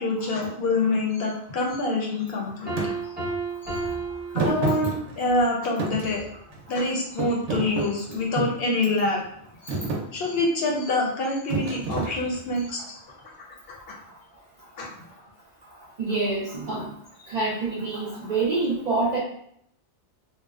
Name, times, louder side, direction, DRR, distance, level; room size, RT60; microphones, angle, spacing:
voice 1, 0.0-2.9 3.6-3.9 4.3-6.2 6.7-9.2 9.6-9.8 10.1-13.0 13.9-14.0 14.8-14.9, left 2 dB, 65° left, -1 dB, 0.7 m, -26 dB
Piano, 2.7-5.2, right 3 dB, 10° right, 0.8 m, -32 dB
Thump thud, 2.8-2.9 4.3-5.4 5.8-6.8 7.2-8.6 9.2-9.4 9.7-10.1 11.5-12.6, right 3 dB, 80° right, 0.9 m, -29 dB
voice 2, 16.0-16.9 17.3-19.2, right 3 dB, 60° right, -6 dB, 0.4 m, -26 dB
2.6 x 2.0 x 2.3 m, 0.69 s
omnidirectional pair, 1.2 m